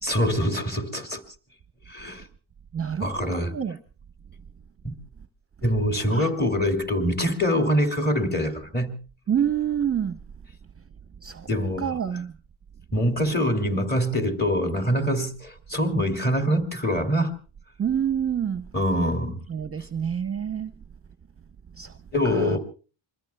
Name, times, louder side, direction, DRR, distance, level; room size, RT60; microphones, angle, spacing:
voice 1, 0.0-1.2 1.9-2.3 3.0-3.5 4.8-5.0 5.6-8.9 11.5-11.9 12.9-17.3 18.7-19.4 22.1-22.6, equal, 20° left, 2.7 m, -24 dB
voice 2, 2.7-3.8 6.1-6.3 9.3-10.2 11.2-11.5 11.8-12.3 17.8-18.7 19.5-20.7 21.7-22.0 22.2-22.6, right 8 dB, 30° right, 0.7 m, -27 dB
27.0 x 22.0 x 2.3 m
cardioid pair, 110°, 48 cm